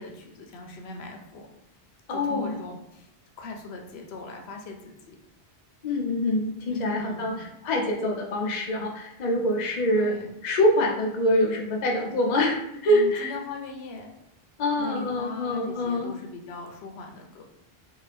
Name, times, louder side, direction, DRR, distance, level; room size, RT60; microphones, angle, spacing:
voice 1, 0.0-1.5 2.1-3.1 3.4-5.2 6.7-7.5 10.0-10.3 12.9-14.1 14.8-17.4, left 3 dB, 90° left, 3 dB, 0.8 m, -39 dB
voice 2, 2.1-2.5 5.8-10.1 10.4-13.3 14.6-16.1, left 1 dB, 50° left, 0 dB, 0.7 m, -25 dB
2.7 x 2.5 x 3.2 m, 0.82 s
omnidirectional pair, 1.0 m